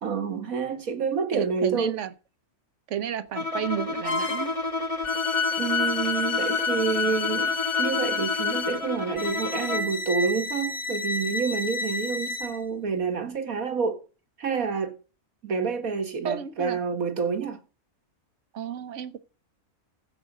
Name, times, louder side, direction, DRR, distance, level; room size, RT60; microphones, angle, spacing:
voice 1, 0.0-2.0 5.6-14.0 14.4-15.0 15.4-17.6, right 5 dB, 85° right, 2.0 m, -28 dB
voice 2, 1.3-2.1 2.9-4.5 16.2-16.8 18.5-19.2, right 9 dB, 65° right, 1.0 m, -32 dB
Bowed string instrument, 3.3-10.0, left 2 dB, 25° left, 1.4 m, -31 dB
sound 1, 4.1-4.5 5.0-12.6, left 4 dB, 55° left, 1.9 m, -29 dB
15.0 x 5.1 x 6.2 m
omnidirectional pair, 1.4 m